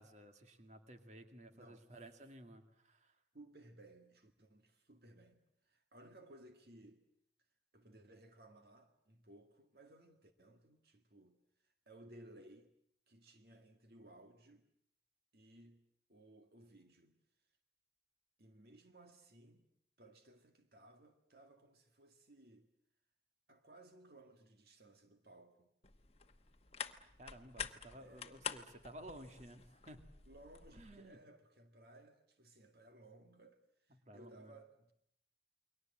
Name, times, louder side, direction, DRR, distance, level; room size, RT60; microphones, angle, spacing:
voice 1, 0.0-3.1 27.2-30.0 30.7-31.2 34.0-34.5, right 1 dB, 40° right, 2.2 m, -55 dB
voice 2, 1.5-2.3 3.3-7.1 7.7-12.7 13.1-14.7 15.3-17.6 18.4-19.7 20.0-22.7 23.5-25.7 27.9-28.7 30.3-34.9, right 1 dB, 60° right, 1.9 m, -61 dB
sound 1, 25.8-31.0, left 7 dB, 35° left, 1.1 m, -48 dB
29.0 x 22.5 x 7.6 m
head